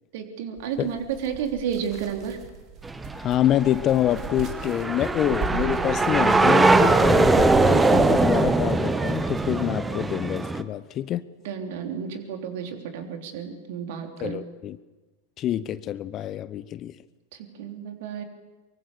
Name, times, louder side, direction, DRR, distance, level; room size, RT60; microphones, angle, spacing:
voice 1, 0.1-2.4 11.4-14.4 17.6-18.2, right 8 dB, 50° right, 3.4 m, -31 dB
sound 1, 0.6-9.8, right 7 dB, 35° right, 3.3 m, -37 dB
sound 2, 2.8-10.6, right 3 dB, 10° right, 1.2 m, -21 dB
voice 2, 3.1-11.2 14.2-14.8 15.4-16.9, left 12 dB, 30° left, 0.8 m, -26 dB
24.0 x 23.5 x 7.1 m
figure-of-eight pair, 90°, 0 cm